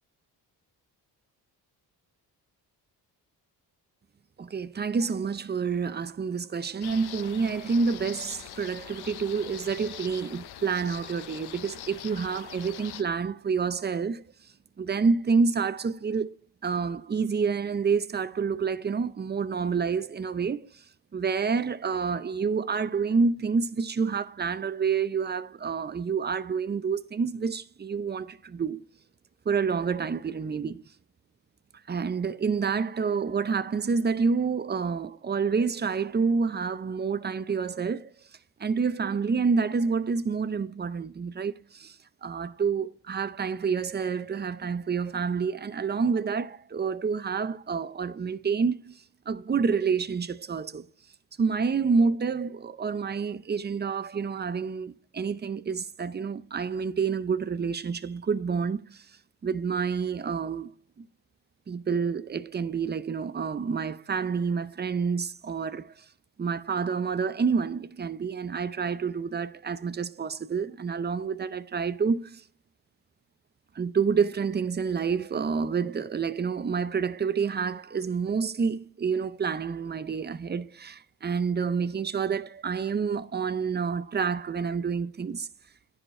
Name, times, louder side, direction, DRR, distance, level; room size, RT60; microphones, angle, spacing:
voice 1, 4.4-14.2 14.8-16.3 16.6-20.8 21.1-28.8 29.5-30.8 31.9-38.1 38.6-42.0 42.2-49.0 49.3-50.8 51.4-59.1 59.4-60.7 61.0-61.1 61.7-65.9 66.4-72.4 73.8-85.5, right 5 dB, 25° right, 0.5 m, -28 dB
sound 1, 6.8-13.0, left 11 dB, 65° left, 0.6 m, -43 dB
10.0 x 6.5 x 4.3 m
cardioid pair, 85°, 42 cm